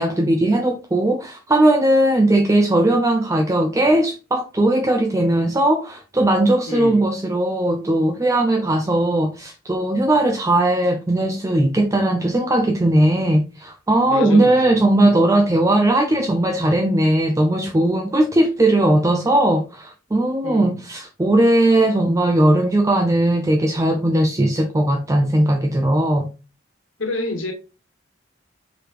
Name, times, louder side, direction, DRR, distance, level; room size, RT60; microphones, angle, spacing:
voice 1, 0.0-26.3, right 1 dB, 15° right, 0.4 m, -18 dB
voice 2, 6.7-7.1 14.1-15.2 20.4-20.8 27.0-27.5, left 2 dB, 80° left, 1.4 m, -28 dB
4.8 x 3.4 x 3.0 m
head